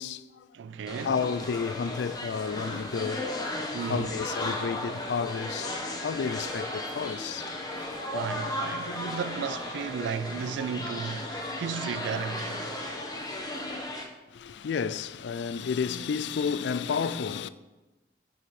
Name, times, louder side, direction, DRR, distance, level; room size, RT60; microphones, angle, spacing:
voice 1, 0.0-0.4 1.0-3.3 3.9-5.7 6.0-7.5 8.9-9.0 14.3-17.5, left 6 dB, 75° left, 0.4 m, -31 dB
voice 2, 0.5-1.2 3.7-4.1 8.1-12.8, right 6 dB, 90° right, 0.3 m, -34 dB
sound 1, 0.9-14.0, left 1 dB, 20° left, 0.9 m, -35 dB
9.9 x 5.0 x 4.2 m
head